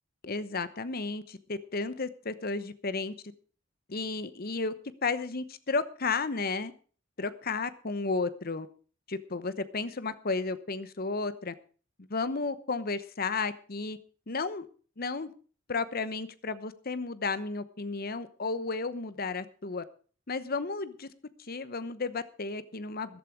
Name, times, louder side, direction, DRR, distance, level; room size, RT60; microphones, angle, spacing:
voice 1, 0.2-3.1 3.9-4.7 5.0-6.7 7.2-8.7 9.1-11.5 12.1-14.0 14.3-14.7 15.0-15.3 15.7-19.8 20.3-21.1 21.5-23.2, left 4 dB, 50° left, 14 dB, 0.9 m, -33 dB
14.0 x 11.5 x 4.8 m, 0.40 s
head